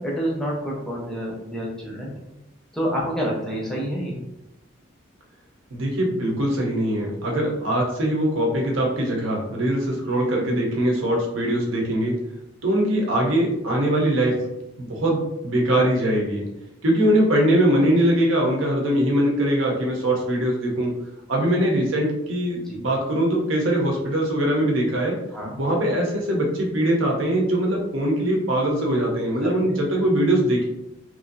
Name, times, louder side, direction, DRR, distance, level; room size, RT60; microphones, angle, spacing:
voice 1, 0.0-2.1 2.7-4.2 22.6-22.8 25.3-25.5 29.4-29.5, equal, ahead, -4 dB, 0.6 m, -28 dB
voice 2, 5.7-12.2 12.6-14.4 14.8-16.5 16.8-20.9 21.3-25.2 25.6-30.6, right 1 dB, 75° right, -1 dB, 0.8 m, -22 dB
3.0 x 2.6 x 2.6 m, 0.89 s
head